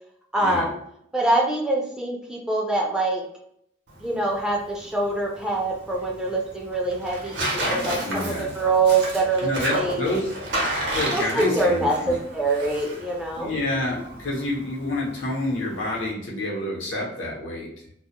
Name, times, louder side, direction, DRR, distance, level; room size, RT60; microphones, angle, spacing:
voice 1, 0.3-0.8 1.1-3.2 4.0-10.1 11.1-13.5, right 2 dB, 5° right, -3 dB, 0.4 m, -24 dB
Tearing, 3.9-16.1, right 1 dB, 60° right, 0.7 m, -32 dB
voice 2, 8.0-8.5 9.4-10.3 10.9-12.2 13.3-17.7, left 1 dB, 75° left, -4 dB, 0.8 m, -28 dB
2.2 x 2.1 x 2.8 m, 0.72 s
head